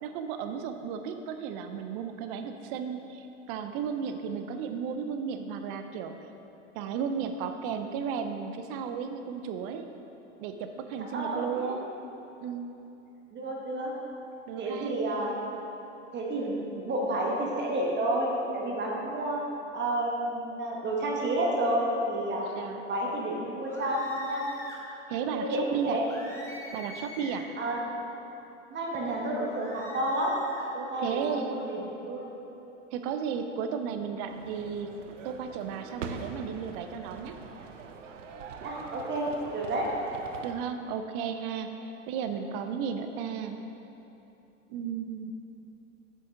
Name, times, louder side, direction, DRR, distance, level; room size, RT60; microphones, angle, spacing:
voice 1, 0.0-6.2 6.7-9.9 10.4-11.9 12.4-12.7 14.5-15.0 22.5-22.8 25.1-26.0 26.7-27.5 31.0-31.6 32.9-34.9 35.2-37.4 40.4-43.6 44.7-45.3, right 7 dB, 50° right, 7 dB, 0.6 m, -34 dB
voice 2, 11.1-11.7 13.3-13.9 14.6-15.3 16.1-19.4 19.7-22.5 22.9-24.4 25.3-26.1 27.6-27.8 28.7-30.3 30.7-32.3 38.6-39.3 39.5-39.9 42.3-42.4, right 1 dB, 30° right, -2 dB, 1.3 m, -30 dB
sound 1, 23.6-24.8 26.1-27.5 29.5-30.7, left 2 dB, 10° left, 1.3 m, -45 dB
sound 2, 34.3-40.5, right 5 dB, 85° right, 0.7 m, -42 dB
7.8 x 6.8 x 3.7 m, 3.0 s
hypercardioid pair, 95°, 37 cm